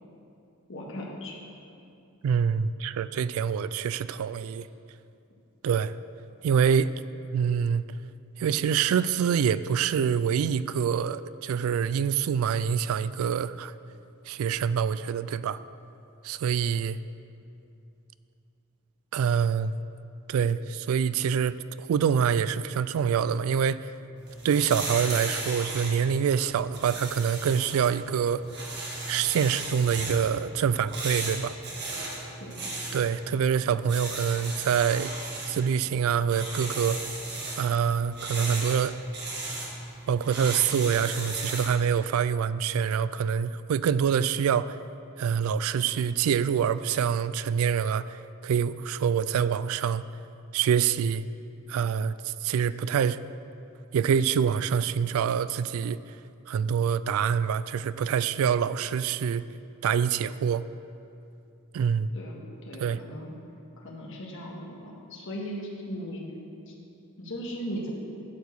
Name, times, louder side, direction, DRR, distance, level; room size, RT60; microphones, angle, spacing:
voice 1, 0.7-1.4 32.4-32.7 62.1-63.3 63.8-66.2 66.7-66.8 67.2-67.9, equal, 60° left, -2 dB, 1.7 m, -38 dB
voice 2, 2.2-4.7 5.6-5.9 6.4-7.0 7.3-7.8 8.4-13.7 14.3-15.6 16.2-17.0 19.1-19.7 20.3-23.9 24.4-28.4 29.1-31.6 32.9-35.1 35.5-37.0 37.6-39.0 40.1-44.8 45.2-50.0 50.5-51.2 51.7-53.2 53.9-56.0 56.5-59.4 59.8-60.6 61.7-62.1 62.8-63.0, right 7 dB, 70° right, 16 dB, 0.3 m, -26 dB
sound 1, 24.2-41.8, right 2 dB, 50° right, 1.9 m, -36 dB
12.0 x 4.7 x 7.0 m, 2.6 s
head